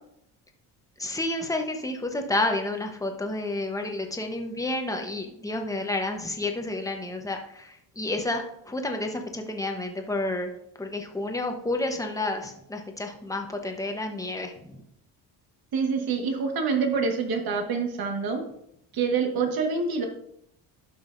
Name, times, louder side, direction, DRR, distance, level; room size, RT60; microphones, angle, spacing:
voice 1, 1.0-14.8, left 2 dB, 10° left, 4 dB, 1.0 m, -30 dB
voice 2, 15.7-18.4 18.9-20.1, right 5 dB, 55° right, 4 dB, 1.6 m, -26 dB
11.5 x 5.5 x 2.6 m, 0.75 s
cardioid pair, 110°, 42 cm